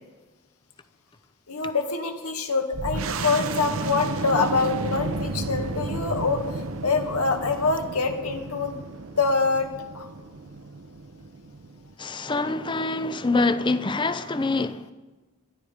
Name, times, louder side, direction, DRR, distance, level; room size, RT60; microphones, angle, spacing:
voice 1, 1.5-6.4 6.8-8.8 9.2-9.7 9.9-10.1, left 4 dB, 85° left, 2.0 m, -25 dB
sound 1, 2.7-11.9, right 2 dB, 70° right, 1.0 m, -32 dB
voice 2, 12.0-14.8, left 3 dB, 20° left, 0.6 m, -25 dB
22.0 x 12.5 x 5.0 m
head